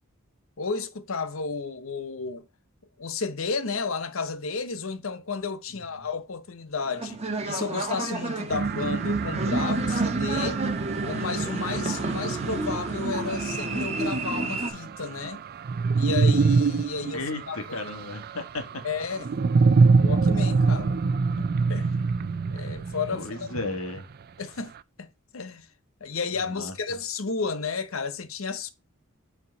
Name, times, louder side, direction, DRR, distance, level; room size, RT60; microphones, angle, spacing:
voice 1, 0.6-2.5 3.0-10.6 11.0-15.4 15.9-17.9 18.8-19.3 19.9-21.0 21.4-21.9 22.5-23.5 24.4-25.1 25.3-25.7 26.0-28.7, left 4 dB, 70° left, 0.9 m, -32 dB
sound 1, 6.8-14.7, right 2 dB, 30° right, 1.7 m, -31 dB
sound 2, 8.5-24.0, right 4 dB, 45° right, 0.4 m, -25 dB
voice 2, 17.1-18.8 23.1-24.1 26.4-26.7, left 2 dB, 85° left, 1.8 m, -34 dB
8.6 x 4.5 x 4.0 m
head